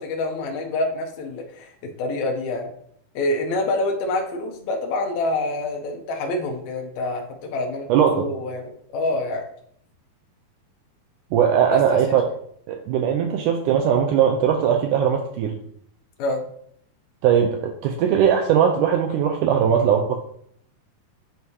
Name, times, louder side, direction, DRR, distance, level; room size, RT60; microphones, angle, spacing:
voice 1, 0.0-1.7 2.0-2.7 3.1-9.4 11.7-12.0 16.2-16.4, left 2 dB, 85° left, 2 dB, 1.6 m, -26 dB
voice 2, 7.9-8.3 11.3-12.2 12.7-15.6 17.2-20.1, right 8 dB, 90° right, 3 dB, 1.8 m, -19 dB
8.2 x 4.7 x 2.8 m, 0.67 s
omnidirectional pair, 4.2 m